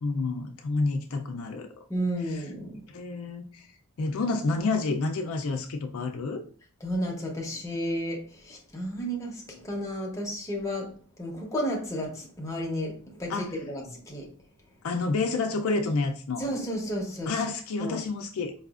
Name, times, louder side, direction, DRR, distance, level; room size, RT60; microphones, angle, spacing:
voice 1, 0.0-1.8 2.2-2.5 2.9-3.7 4.0-6.4 13.3-13.6 14.8-16.4 17.3-18.5, left 3 dB, 65° left, 4 dB, 0.4 m, -29 dB
voice 2, 1.9-2.8 6.8-8.2 8.4-10.9 11.2-14.3 16.4-17.3 17.8-18.0, equal, 15° left, -1 dB, 0.7 m, -32 dB
4.8 x 2.3 x 2.3 m, 0.43 s
head